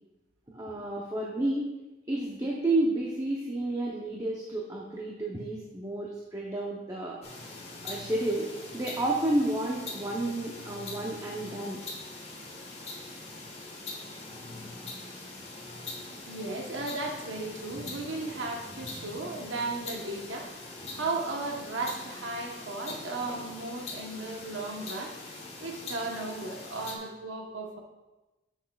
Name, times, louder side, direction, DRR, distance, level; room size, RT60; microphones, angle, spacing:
voice 1, 0.5-1.6 2.1-7.2 7.8-8.5 8.7-11.8, right 1 dB, 20° right, -3 dB, 0.7 m, -31 dB
sound 1, 7.2-27.0, left 2 dB, 35° left, 1.3 m, -42 dB
voice 2, 16.2-20.7 20.9-25.1 25.6-27.8, right 3 dB, 90° right, 1 dB, 1.1 m, -35 dB
10.5 x 6.2 x 2.3 m, 1.1 s
head